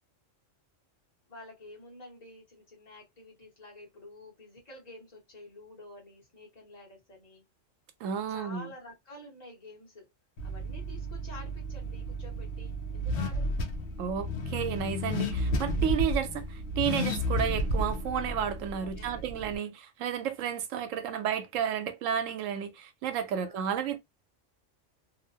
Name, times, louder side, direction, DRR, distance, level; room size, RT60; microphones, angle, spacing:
voice 1, 1.3-7.4 8.3-10.1 10.4-13.5 18.8-19.2 23.3-23.6, left 2 dB, 35° left, 1.1 m, -49 dB
voice 2, 8.0-8.7 14.0-24.0, right 8 dB, 85° right, 1.0 m, -32 dB
Car / Accelerating revving vroom, 10.4-19.6, equal, 65° left, 0.9 m, -32 dB
2.7 x 2.0 x 2.7 m
omnidirectional pair, 1.3 m